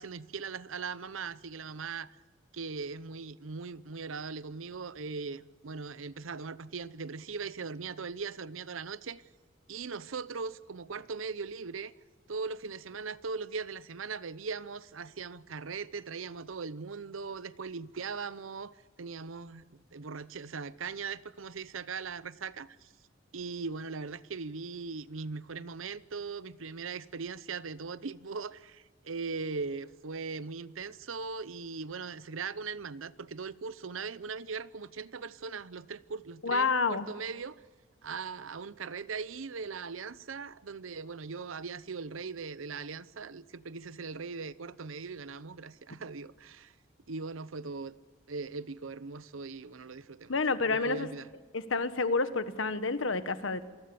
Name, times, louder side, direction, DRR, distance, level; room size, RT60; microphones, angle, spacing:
voice 1, 0.0-2.2 2.5-9.2 9.7-11.9 12.3-22.9 23.3-37.6 38.0-46.7 47.1-48.0 48.3-50.4 50.7-51.3, right 4 dB, 90° right, 0.8 m, -39 dB
voice 2, 36.4-37.1 50.3-51.1 51.5-53.7, left 4 dB, 80° left, 1.4 m, -29 dB
27.0 x 20.0 x 7.0 m
head